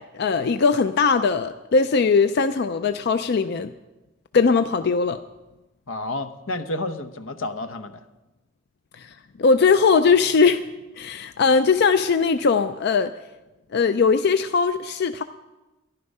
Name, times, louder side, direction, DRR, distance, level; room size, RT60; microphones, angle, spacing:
voice 1, 0.0-3.7 4.3-5.2 9.0-9.1 9.4-10.6 11.0-13.1 13.7-15.2, left 5 dB, 55° left, 10 dB, 0.4 m, -20 dB
voice 2, 5.9-8.0, left 2 dB, 85° left, 9 dB, 0.9 m, -30 dB
13.0 x 11.5 x 5.4 m, 1.1 s
head